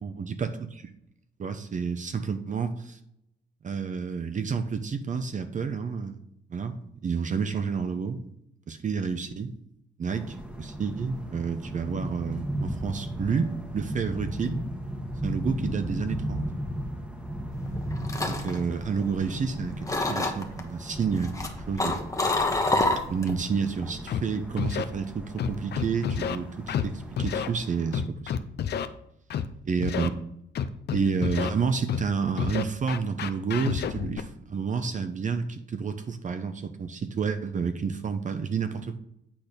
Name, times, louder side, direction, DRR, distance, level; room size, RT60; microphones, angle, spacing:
voice 1, 0.0-0.9 1.4-3.0 3.6-6.2 6.5-6.8 7.0-8.2 8.7-9.5 10.0-14.6 15.2-16.4 18.3-22.0 23.1-28.5 29.7-30.1 30.9-39.0, right 5 dB, 40° right, 8 dB, 0.8 m, -30 dB
sound 1, 10.1-27.9, equal, 5° right, 1.3 m, -36 dB
sound 2, 17.7-19.5 19.9-20.6 21.2-23.4 23.7-24.1, left 2 dB, 15° left, 1.2 m, -27 dB
Scratching (performance technique), 24.1-24.2 24.6-24.8 25.4-26.4 26.7-26.9 27.2-27.5 27.9-28.9 29.3-29.5 29.8-30.1 30.6-31.5 31.9-32.0 32.4-34.2, left 8 dB, 60° left, 0.6 m, -29 dB
8.6 x 4.3 x 5.1 m, 0.76 s
cardioid pair, 90°, 20 cm